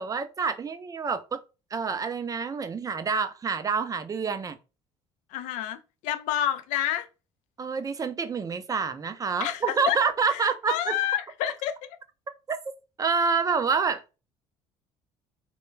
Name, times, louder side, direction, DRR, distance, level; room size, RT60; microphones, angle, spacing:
voice 1, 0.0-1.4 1.7-4.6 7.6-10.9 12.5-12.6 13.0-14.2, right 5 dB, 30° right, 0.4 m, -27 dB
voice 2, 5.3-7.1 9.4-10.0 10.3-12.0, left 11 dB, 75° left, 0.4 m, -29 dB
2.2 x 2.1 x 3.1 m
supercardioid pair, 75°, 12 cm